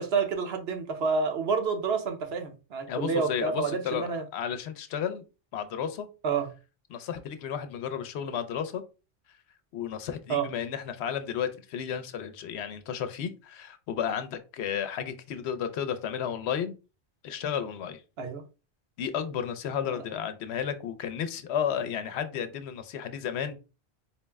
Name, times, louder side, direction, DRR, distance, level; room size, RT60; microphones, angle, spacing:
voice 1, 0.0-4.2 6.2-6.5 10.3-10.5 18.2-18.4 19.8-20.0, right 5 dB, 65° right, 0.9 m, -29 dB
voice 2, 2.9-5.2 5.5-6.1 6.9-8.8 9.7-16.8 17.2-18.0 19.0-23.5, left 8 dB, 75° left, 0.8 m, -33 dB
4.3 x 2.1 x 3.4 m
omnidirectional pair, 1.1 m